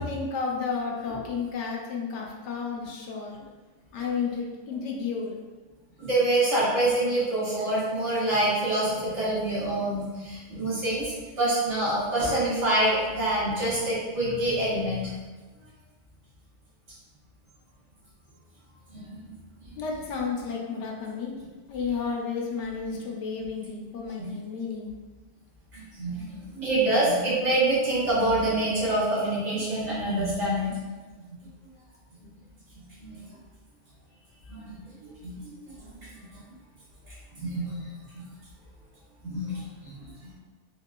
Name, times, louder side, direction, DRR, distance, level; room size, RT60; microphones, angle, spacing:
voice 1, 0.0-3.4 3.9-5.4 19.8-21.3 21.7-24.9, left 5 dB, 75° left, -1 dB, 0.9 m, -32 dB
voice 2, 6.0-15.1 18.9-19.3 24.2-24.3 26.0-30.7 33.0-33.2 34.5-34.6 35.2-35.4 37.4-37.8 38.1-38.2 39.2-39.5 39.8-40.0, right 1 dB, 75° right, -9 dB, 1.5 m, -26 dB
3.7 x 2.3 x 2.2 m, 1.3 s
omnidirectional pair, 1.2 m